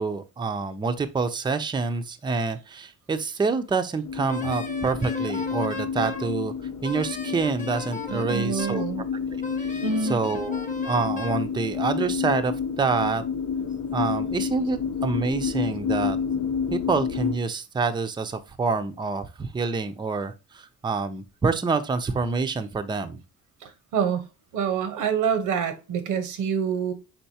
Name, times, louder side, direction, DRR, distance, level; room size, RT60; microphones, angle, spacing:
voice 1, 0.0-6.5 6.8-8.8 9.6-13.2 13.9-16.2 16.7-23.2, right 4 dB, 15° right, 0.5 m, -27 dB
sound 1, 4.0-17.4, left 6 dB, 75° left, 0.8 m, -29 dB
Wind instrument woodwind instrument, 4.3-6.3 6.8-8.9 9.4-11.4, left 1 dB, 25° left, 0.8 m, -37 dB
voice 2, 8.1-9.0 9.8-10.2 23.6-24.2 24.5-26.9, right 6 dB, 90° right, 0.9 m, -26 dB
4.5 x 3.9 x 2.7 m
cardioid pair, 90°, 30 cm